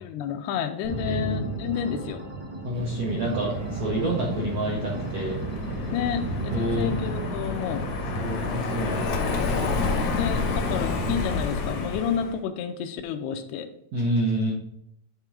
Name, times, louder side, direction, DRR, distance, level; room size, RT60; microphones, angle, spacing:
voice 1, 0.0-2.2 5.9-7.9 10.1-13.7, left 8 dB, 90° left, 7 dB, 2.7 m, -30 dB
sound 1, 0.8-7.2, right 2 dB, 30° right, 0.9 m, -35 dB
voice 2, 0.9-1.4 2.6-5.4 6.5-7.0 8.1-9.5 13.9-14.5, right 1 dB, 75° right, -3 dB, 1.4 m, -28 dB
sound 2, 2.7-11.4, right 2 dB, 50° right, 1.6 m, -35 dB
Car passing by, 3.8-12.4, left 4 dB, 70° left, 1.6 m, -30 dB
9.7 x 3.7 x 4.8 m, 0.77 s
omnidirectional pair, 4.5 m